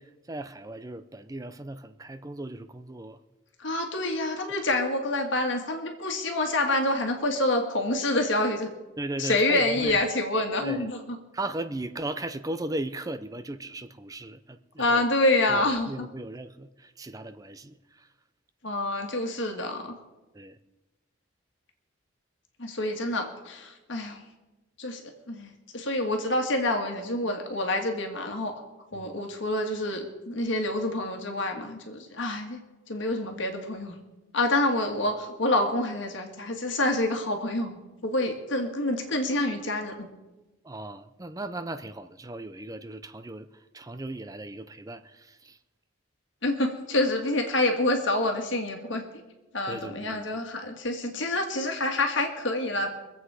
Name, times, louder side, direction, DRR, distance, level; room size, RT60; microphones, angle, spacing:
voice 1, 0.0-3.2 9.0-10.0 10.6-10.9 11.3-15.0 15.5-15.6 15.9-18.1 20.3-20.6 28.9-29.2 40.6-45.6 49.7-50.3, right 2 dB, 15° right, 10 dB, 0.5 m, -37 dB
voice 2, 3.6-8.7 9.2-11.2 14.8-16.1 18.6-19.9 22.6-24.2 24.8-25.0 25.3-28.5 28.9-32.6 32.9-34.0 34.3-40.1 46.4-49.1 49.5-52.9, left 2 dB, 65° left, 3 dB, 1.7 m, -27 dB
24.0 x 8.1 x 4.8 m, 1.1 s
head